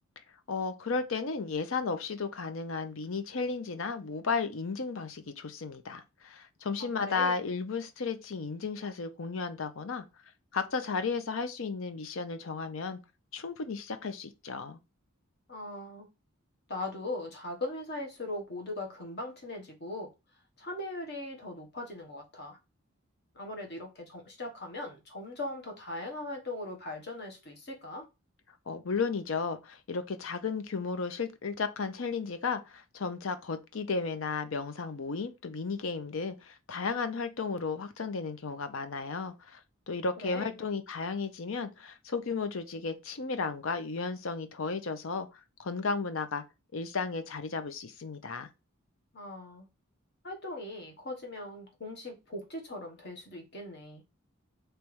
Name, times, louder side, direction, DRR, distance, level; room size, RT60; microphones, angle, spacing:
voice 1, 0.5-10.0 10.5-13.0 13.3-14.8 28.7-39.6 39.9-45.3 45.6-46.4 46.7-48.5, left 4 dB, 65° left, 0.6 m, -34 dB
voice 2, 6.8-7.4 15.5-16.1 16.7-20.1 20.6-22.6 23.3-28.1 40.2-40.5 49.1-49.7 50.2-54.0, left 2 dB, 50° left, 1.2 m, -39 dB
3.4 x 3.1 x 4.6 m
head